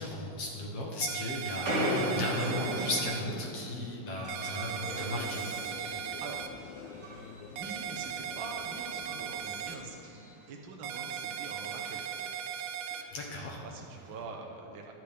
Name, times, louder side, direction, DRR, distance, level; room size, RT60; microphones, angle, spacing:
voice 1, 0.0-5.5 13.1-13.6, left 2 dB, 60° left, -1 dB, 1.9 m, -36 dB
sound 1, 1.0-3.2 4.3-6.5 7.6-9.8 10.8-13.0, right 9 dB, 90° right, 2.1 m, -38 dB
sound 2, 1.4-6.2 6.5-7.5 7.9-8.1 8.6-10.6 10.9-11.0 11.2-11.3 11.6-12.1 12.9-13.0 13.9-14.2, equal, 35° right, 1.3 m, -37 dB
sound 3, 4.6-10.0, left 8 dB, 85° left, 1.9 m, -48 dB
voice 2, 5.9-12.2 12.7-13.3 13.6-14.9, right 3 dB, 70° right, 1 dB, 1.1 m, -45 dB
13.5 x 11.0 x 3.5 m, 2.6 s
omnidirectional pair, 3.4 m